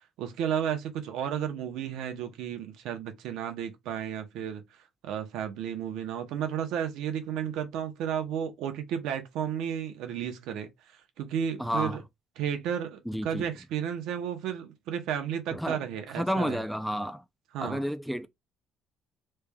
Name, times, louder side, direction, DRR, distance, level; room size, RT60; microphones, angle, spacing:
voice 1, 0.2-4.6 5.0-10.7 11.2-12.0 12.4-16.6 17.5-17.8, right 9 dB, 80° right, 0.8 m, -33 dB
voice 2, 11.6-12.0 13.1-13.4 15.5-15.8 16.1-17.2 17.6-18.3, equal, ahead, 0.4 m, -31 dB
3.4 x 3.2 x 2.2 m
cardioid pair, 110°, 0 cm